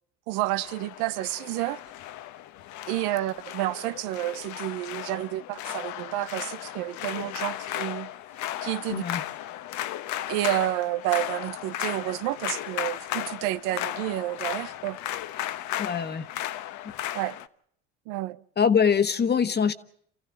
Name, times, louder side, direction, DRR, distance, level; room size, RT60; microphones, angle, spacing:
voice 1, 0.3-1.8 2.9-8.1 8.6-9.0 10.3-15.0 17.1-17.4 18.1-18.4, right 16 dB, 75° right, 0.8 m, -30 dB
sound 1, 0.6-17.5, left 13 dB, 65° left, 1.1 m, -35 dB
voice 2, 8.9-9.2 15.8-16.3 18.6-19.7, left 7 dB, 30° left, 1.4 m, -23 dB
28.5 x 15.0 x 7.3 m
supercardioid pair, 85°, 32 cm